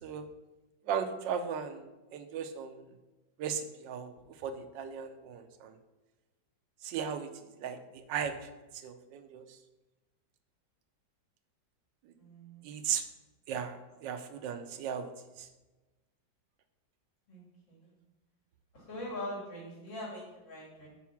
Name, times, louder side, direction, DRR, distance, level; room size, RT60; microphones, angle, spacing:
voice 1, 0.9-2.8 3.4-4.1 4.4-5.8 6.8-7.3 7.6-8.3 8.8-9.4 12.6-13.0 13.5-15.1 15.4-15.5, right 7 dB, 80° right, 7 dB, 1.3 m, -36 dB
voice 2, 12.2-12.7 17.3-17.9 18.7-20.9, left 1 dB, 80° left, -6 dB, 3.2 m, -43 dB
6.0 x 4.7 x 5.8 m, 1.1 s
omnidirectional pair, 2.0 m